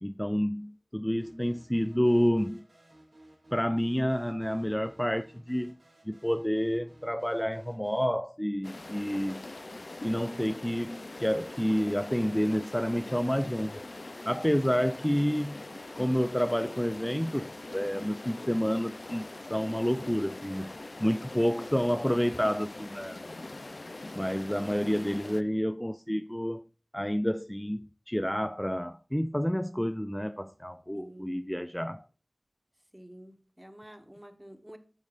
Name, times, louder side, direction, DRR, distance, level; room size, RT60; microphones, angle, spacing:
voice 1, 0.0-2.6 3.5-5.8 6.1-9.4 10.0-13.8 14.3-15.7 16.0-20.7 21.0-23.2 24.2-26.6 26.9-32.0, equal, 5° left, 0.3 m, -29 dB
sound 1, 1.2-8.1, right 1 dB, 75° right, 2.6 m, -58 dB
sound 2, 8.6-25.4, left 2 dB, 60° left, 0.5 m, -43 dB
voice 2, 30.9-31.4 32.9-34.8, right 1 dB, 15° right, 1.3 m, -49 dB
11.5 x 7.3 x 2.6 m
wide cardioid pair, 45°, 0 cm